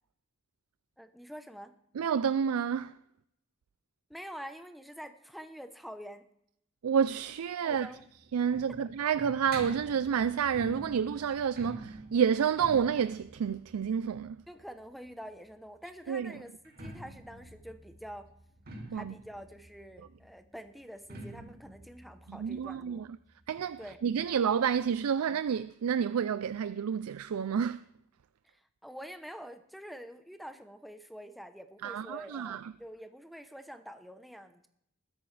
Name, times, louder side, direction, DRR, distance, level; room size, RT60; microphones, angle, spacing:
voice 1, 1.0-1.7 4.1-6.3 7.6-8.0 14.5-18.3 18.9-23.0 23.8-24.0 28.4-34.7, equal, ahead, 0.8 m, -46 dB
voice 2, 1.9-3.0 6.8-7.9 8.3-14.4 16.1-16.3 18.9-19.1 22.3-23.1 23.5-27.8 31.8-32.6, right 7 dB, 80° right, 0.4 m, -29 dB
sound 1, 7.7-15.4 16.5-23.9 24.2-24.3 24.5-24.6 25.3-25.4, right 1 dB, 45° right, 2.4 m, -47 dB
20.5 x 10.5 x 3.3 m
head